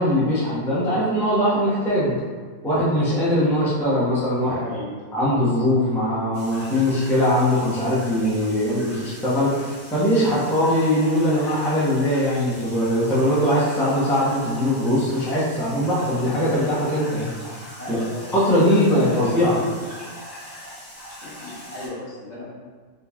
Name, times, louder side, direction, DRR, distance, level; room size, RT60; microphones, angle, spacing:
voice 1, 0.0-2.2 2.6-4.6 5.1-17.3 17.9-18.0 18.3-19.6, equal, 5° left, -9 dB, 0.5 m, -21 dB
voice 2, 4.4-4.9 17.8-18.7 19.0-19.8 21.2-22.5, left 2 dB, 60° left, -6 dB, 1.0 m, -36 dB
sound 1, 6.3-21.9, equal, 25° left, 1.0 m, -41 dB
3.6 x 2.8 x 2.3 m, 1.5 s
omnidirectional pair, 1.4 m